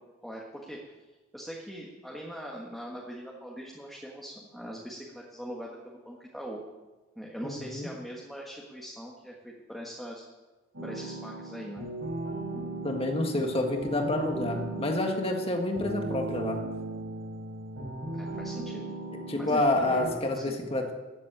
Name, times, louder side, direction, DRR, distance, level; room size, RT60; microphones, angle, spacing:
voice 1, 0.2-0.8 1.3-6.6 7.1-10.2 10.8-11.9 18.1-18.9 19.3-20.6, equal, ahead, -2 dB, 1.5 m, -41 dB
voice 2, 7.4-7.9 12.8-16.6 19.1-20.9, left 1 dB, 30° left, 3 dB, 1.7 m, -28 dB
sound 1, 10.7-20.1, right 2 dB, 90° right, 4.4 m, -37 dB
14.0 x 7.7 x 8.9 m, 1.2 s
head